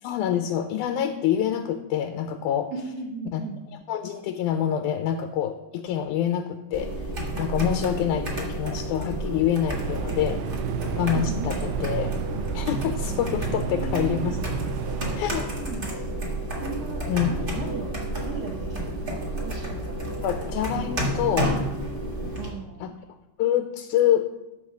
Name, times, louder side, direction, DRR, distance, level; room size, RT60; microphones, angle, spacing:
voice 1, 0.0-2.7 3.3-3.4 3.9-7.1 7.4-10.4 10.9-12.1 12.5-14.4 15.2-15.5 17.1-17.3 20.2-21.6 22.8-22.9 23.4-24.3, left 10 dB, 80° left, 7 dB, 1.9 m, -26 dB
voice 2, 2.7-3.6 7.5-8.1 11.1-11.5 13.6-14.4 15.6-17.9 18.2-20.2 22.4-22.9, right 3 dB, 70° right, 0 dB, 1.5 m, -37 dB
sound 1, 6.7-22.5, right 1 dB, 45° right, 0.6 m, -30 dB
sound 2, 9.7-15.2, right 7 dB, 90° right, 2.3 m, -32 dB
12.5 x 4.3 x 6.3 m, 0.99 s
omnidirectional pair, 4.0 m